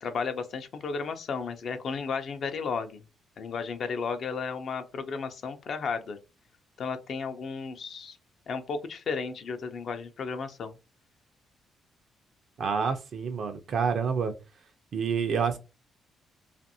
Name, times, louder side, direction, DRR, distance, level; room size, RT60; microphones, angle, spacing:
voice 1, 0.0-3.0 3.4-6.2 6.8-8.2 8.5-10.7, left 5 dB, 60° left, 0.6 m, -33 dB
voice 2, 12.6-14.3 14.9-15.6, right 6 dB, 60° right, 0.6 m, -28 dB
2.5 x 2.5 x 2.7 m
cardioid pair, 90°, 0 cm